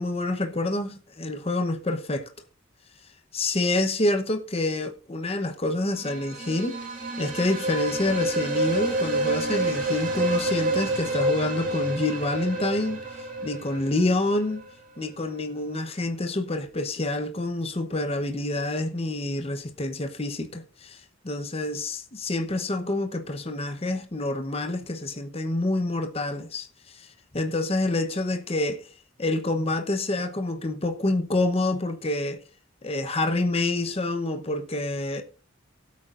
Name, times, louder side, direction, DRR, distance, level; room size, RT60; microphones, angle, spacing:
voice 1, 0.0-2.3 3.3-6.8 7.2-13.0 13.4-14.6 15.0-27.1 27.3-28.8 29.2-32.4 32.8-35.2, left 2 dB, 30° left, 0.9 m, -27 dB
sound 1, 5.9-14.7, right 1 dB, 45° right, 2.7 m, -28 dB
17.0 x 8.4 x 2.5 m
head